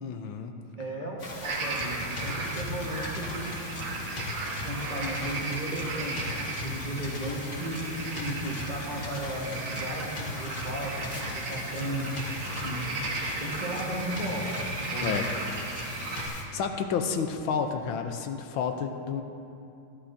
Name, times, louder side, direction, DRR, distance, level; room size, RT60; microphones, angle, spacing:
voice 1, 0.0-0.6 15.0-15.3 16.2-19.2, left 6 dB, 75° left, 6 dB, 1.4 m, -31 dB
voice 2, 0.8-3.7 4.6-6.3 6.6-12.1 12.6-12.9 13.4-14.6 14.9-15.2 16.5-16.6, right 1 dB, 25° right, -5 dB, 1.2 m, -35 dB
sound 1, 1.2-16.4, left 2 dB, 40° left, 1.4 m, -38 dB
sound 2, 1.4-16.3, right 3 dB, 90° right, 2.1 m, -36 dB
15.5 x 11.5 x 2.6 m, 2.6 s
omnidirectional pair, 2.3 m